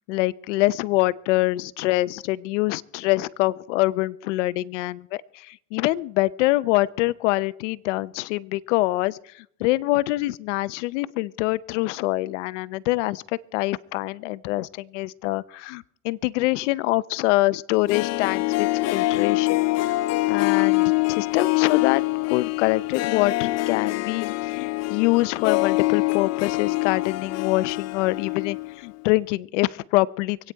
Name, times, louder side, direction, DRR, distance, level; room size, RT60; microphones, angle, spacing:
voice 1, 0.0-13.2 13.5-20.0 20.3-30.5, left 19 dB, 80° left, 19 dB, 0.7 m, -25 dB
Harp, 17.7-28.7 29.0-29.1, left 21 dB, 45° left, 0.6 m, -24 dB
24.5 x 9.1 x 4.5 m, 0.69 s
supercardioid pair, 100°, 36 cm